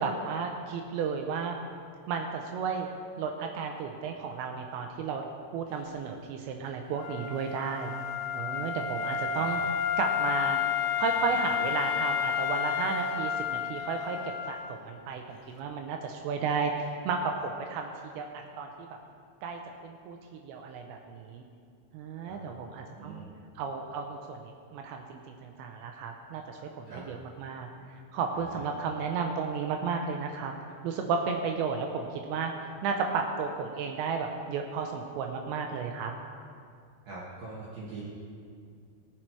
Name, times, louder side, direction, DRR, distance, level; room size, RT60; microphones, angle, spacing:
voice 1, 0.0-1.6 2.1-2.9 3.2-5.3 5.5-7.9 8.3-9.6 10.0-10.6 11.0-14.2 14.5-17.9 18.2-18.3 18.6-18.7 19.4-20.2 20.4-21.4 21.9-23.2 23.6-27.7 28.1-30.5 30.8-32.5 32.8-36.1, right 5 dB, 80° right, 3 dB, 2.6 m, -33 dB
Wind instrument woodwind instrument, 7.0-14.8, left 8 dB, 85° left, 3.2 m, -31 dB
voice 2, 23.0-23.3 26.9-27.0 28.3-28.7 37.1-38.0, right 3 dB, 60° right, -7 dB, 2.6 m, -43 dB
17.5 x 7.6 x 4.5 m, 2.3 s
omnidirectional pair, 5.9 m